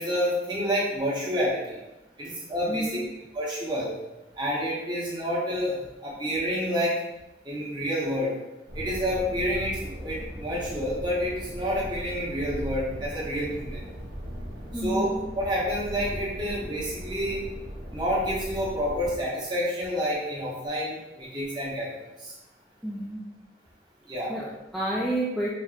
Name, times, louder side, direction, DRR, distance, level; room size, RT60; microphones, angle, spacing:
voice 1, 0.0-1.8 2.2-2.9 3.3-3.9 4.4-5.7 6.0-6.9 7.4-8.3 8.7-13.8 14.8-15.1 15.4-17.4 17.9-21.9 22.2-22.3 24.1-24.3, equal, 25° right, -5 dB, 1.0 m, -28 dB
voice 2, 2.7-3.1 14.7-15.1 22.8-23.4 24.3-25.5, right 1 dB, ahead, -6 dB, 0.3 m, -30 dB
sound 1, 8.7-19.2, equal, 75° right, 0.9 m, -38 dB
4.3 x 2.9 x 2.4 m, 0.97 s
head